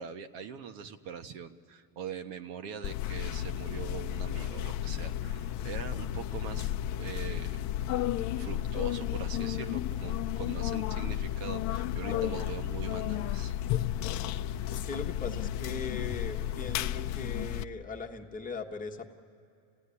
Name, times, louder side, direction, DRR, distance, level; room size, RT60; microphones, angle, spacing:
voice 1, 0.0-7.6 8.3-13.5, right 7 dB, 70° right, 7 dB, 1.5 m, -42 dB
sound 1, 2.8-17.6, left 11 dB, 40° left, 0.6 m, -33 dB
voice 2, 14.7-19.1, left 4 dB, 15° left, 2 dB, 1.3 m, -39 dB
30.0 x 16.5 x 9.8 m, 2.7 s
supercardioid pair, 150°, 46 cm